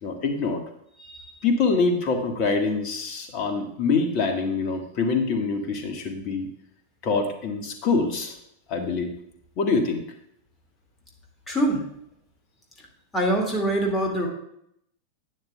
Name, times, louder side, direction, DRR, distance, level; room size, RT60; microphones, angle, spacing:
voice 1, 0.0-0.6 1.4-6.5 7.0-8.4 8.7-9.1 9.6-10.0, left 4 dB, 40° left, 4 dB, 1.6 m, -25 dB
voice 2, 11.5-11.8 13.1-14.3, right 1 dB, 15° left, 0 dB, 2.1 m, -24 dB
11.5 x 9.1 x 2.3 m, 0.73 s
figure-of-eight pair, 90°, 0 cm